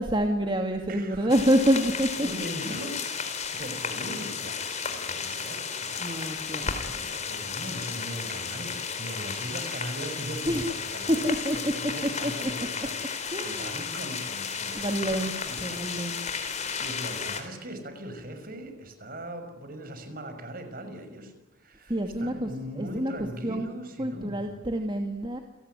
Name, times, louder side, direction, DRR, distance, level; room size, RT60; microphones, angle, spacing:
voice 1, 0.0-2.3 3.9-4.0 6.0-6.7 10.5-10.8 11.1-11.6 11.8-12.5 13.3-13.9 14.7-16.2 21.9-22.5 22.8-23.7 24.0-25.4, equal, 25° right, 4 dB, 2.4 m, -27 dB
voice 2, 0.9-1.3 2.2-12.9 13.4-15.9 16.8-24.6, equal, 50° right, 7 dB, 6.1 m, -40 dB
sound 1, 1.3-17.4, left 6 dB, 35° left, 4.1 m, -33 dB
29.5 x 19.0 x 9.9 m, 1.0 s
head